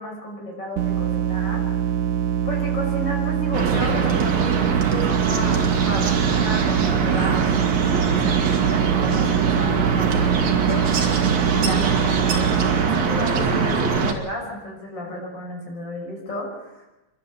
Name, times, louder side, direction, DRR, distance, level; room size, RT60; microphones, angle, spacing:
voice 1, 0.0-1.6 2.4-7.5 7.9-11.0 11.5-16.9, left 1 dB, 35° left, 0 dB, 6.5 m, -33 dB
sound 1, 0.8-12.9, right 10 dB, 85° right, 2.5 m, -24 dB
sound 2, 3.5-14.1, right 5 dB, 60° right, 3.1 m, -22 dB
29.0 x 12.0 x 7.7 m, 1.0 s
omnidirectional pair, 3.5 m